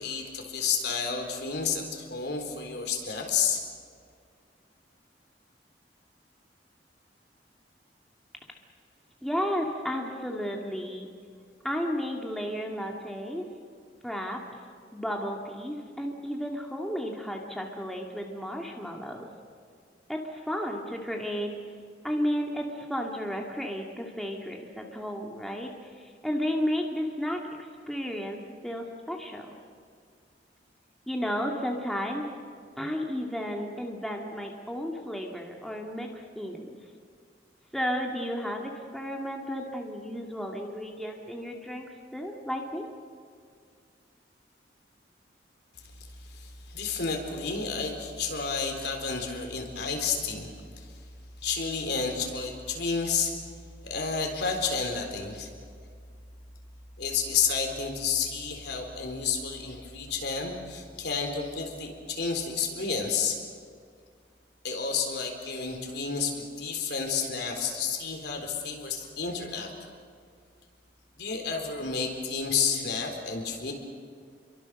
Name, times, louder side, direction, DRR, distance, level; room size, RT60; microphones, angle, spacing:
voice 1, 0.0-3.6 46.0-51.0 51.4-53.3 53.8-55.5 57.0-63.4 64.6-69.7 71.2-73.7, left 5 dB, 65° left, 3 dB, 4.1 m, -31 dB
voice 2, 9.2-11.1 11.6-13.5 14.0-14.4 14.9-19.3 20.1-21.5 22.0-27.4 27.9-28.4 28.6-29.5 31.1-32.3 32.8-36.7 37.7-41.9 42.1-42.8, equal, ahead, 0 dB, 2.2 m, -33 dB
29.0 x 23.5 x 6.5 m, 2.1 s
head